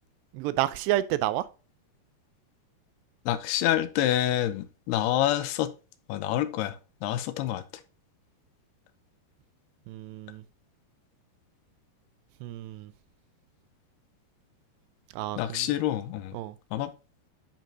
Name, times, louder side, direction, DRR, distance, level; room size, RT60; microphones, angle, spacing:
voice 1, 0.3-1.5 9.9-10.4 12.4-12.9 15.1-15.7 16.3-16.6, right 14 dB, 85° right, 2.7 m, -30 dB
voice 2, 3.3-5.7 6.1-6.8 7.0-7.6 15.4-16.4 16.7-16.9, left 12 dB, 85° left, 2.6 m, -27 dB
10.5 x 5.2 x 2.7 m
omnidirectional pair, 4.9 m